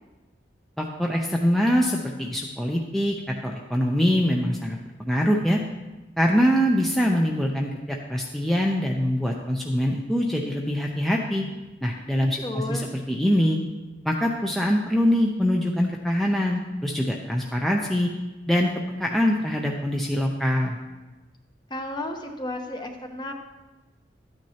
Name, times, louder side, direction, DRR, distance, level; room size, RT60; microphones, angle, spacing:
voice 1, 0.8-3.1 3.4-5.6 6.2-11.5 11.8-13.6 14.0-18.1 18.5-18.7 19.0-20.8, equal, ahead, -1 dB, 0.6 m, -23 dB
voice 2, 12.4-12.9 21.7-23.3, left 1 dB, 25° left, 3 dB, 0.9 m, -33 dB
12.5 x 9.2 x 2.9 m, 1.1 s
head